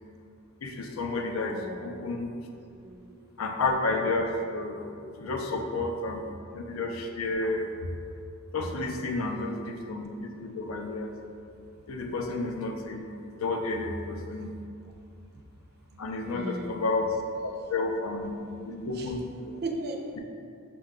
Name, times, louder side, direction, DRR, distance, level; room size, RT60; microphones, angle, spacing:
voice 1, 0.6-2.3 3.4-4.9 5.2-7.7 8.5-11.1 11.9-13.0 13.4-14.5 16.0-17.2 17.4-18.3 18.7-19.5, left 2 dB, 80° left, 3 dB, 0.5 m, -31 dB
voice 2, 1.3-1.9 2.7-3.2 14.0-14.1 16.2-16.8 18.2-19.1 19.5-20.0, right 2 dB, 50° right, 3 dB, 0.4 m, -38 dB
6.2 x 2.3 x 3.7 m, 2.4 s
head